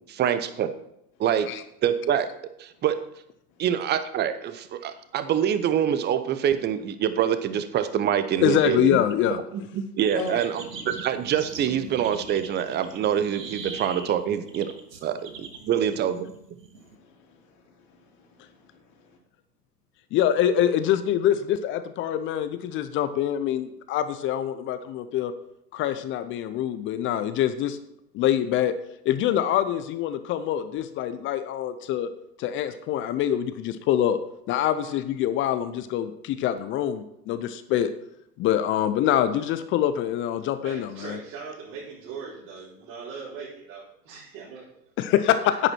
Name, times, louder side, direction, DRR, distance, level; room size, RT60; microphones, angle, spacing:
voice 1, 0.1-0.7 1.2-1.5 1.8-2.3 2.6-3.0 3.6-8.9 9.5-14.7 15.0-16.2, right 9 dB, 20° right, 11 dB, 0.8 m, -25 dB
voice 2, 8.4-9.4 20.1-25.3 25.7-27.8 28.1-28.7 29.1-32.1 32.4-34.2 34.5-37.9 38.4-41.2 45.0-45.4, left 11 dB, 25° left, 12 dB, 0.5 m, -25 dB
sound 1, 10.0-17.0, right 4 dB, 90° right, 1.5 m, -41 dB
voice 3, 10.1-10.5 16.8-19.2, left 2 dB, 60° left, -4 dB, 3.4 m, -40 dB
voice 4, 40.6-44.7 45.5-45.6, right 5 dB, 50° right, -9 dB, 4.7 m, -40 dB
10.5 x 8.8 x 4.4 m, 0.79 s
hypercardioid pair, 100°, 48 cm